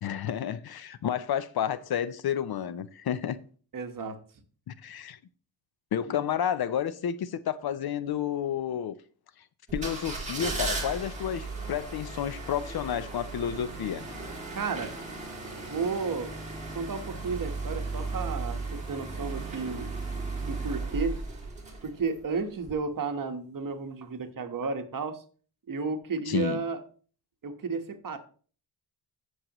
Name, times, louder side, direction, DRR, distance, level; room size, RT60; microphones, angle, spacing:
voice 1, 0.0-3.4 4.7-5.2 5.9-8.9 9.7-14.1 26.3-26.6, left 9 dB, 55° left, 0.6 m, -31 dB
voice 2, 3.7-4.2 6.1-6.2 14.5-14.9 15.6-16.3 16.7-18.6 18.9-19.9 20.4-21.2 21.8-25.2 25.7-26.8 27.4-28.2, right 4 dB, 45° right, 1.3 m, -32 dB
sound 1, 9.7-22.2 22.6-22.7, right 3 dB, 15° right, 2.3 m, -36 dB
15.0 x 6.4 x 3.0 m
wide cardioid pair, 145°, 45 cm